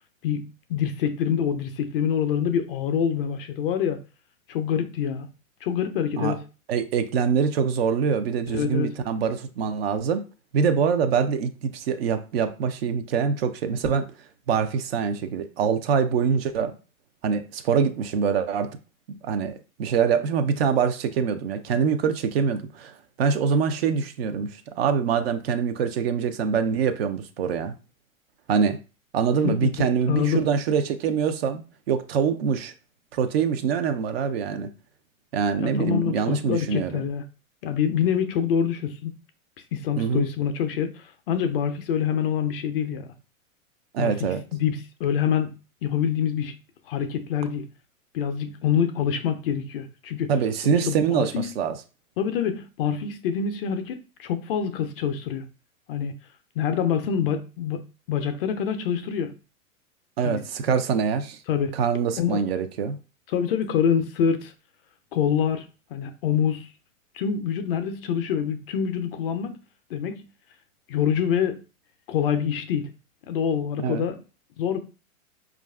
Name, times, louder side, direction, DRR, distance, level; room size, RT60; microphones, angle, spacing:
voice 1, 0.7-4.0 4.5-5.3 5.6-6.4 8.5-8.9 29.4-29.7 30.1-30.5 35.6-37.2 37.6-39.1 39.7-43.1 44.0-45.5 45.8-46.5 46.9-47.7 48.1-50.3 50.6-51.5 52.2-55.5 55.9-56.1 56.6-57.8 58.1-59.3 60.2-60.4 61.5-61.7 62.2-62.4 63.3-64.5 65.1-66.7 67.1-69.6 69.9-70.3 70.9-71.6 72.1-72.9 73.3-74.2 74.6-74.8, left 8 dB, 45° left, 0.5 m, -26 dB
voice 2, 6.7-10.2 10.5-14.1 14.5-16.7 17.2-18.7 19.1-22.9 23.2-27.7 28.5-28.8 29.1-32.7 33.1-34.7 35.3-37.0 40.0-40.3 43.9-44.4 50.3-51.8 60.2-61.4 61.7-63.0 73.8-74.0, right 6 dB, 50° right, 0.5 m, -24 dB
4.5 x 2.4 x 2.2 m
figure-of-eight pair, 105°, 42 cm